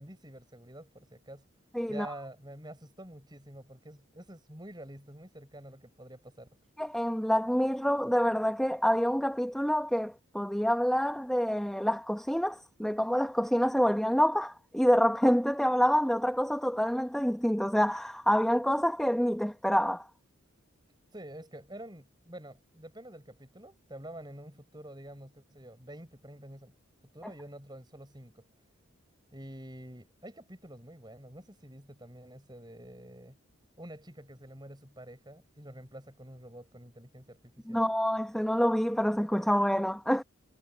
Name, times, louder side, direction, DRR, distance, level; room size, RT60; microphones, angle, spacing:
voice 1, 0.0-1.4 1.9-6.5 21.1-26.7 27.1-28.4 29.3-33.4 33.8-37.8, right 1 dB, 20° right, 6.2 m, -48 dB
voice 2, 1.7-2.1 6.8-20.1 37.7-40.2, equal, ahead, 0.9 m, -27 dB
head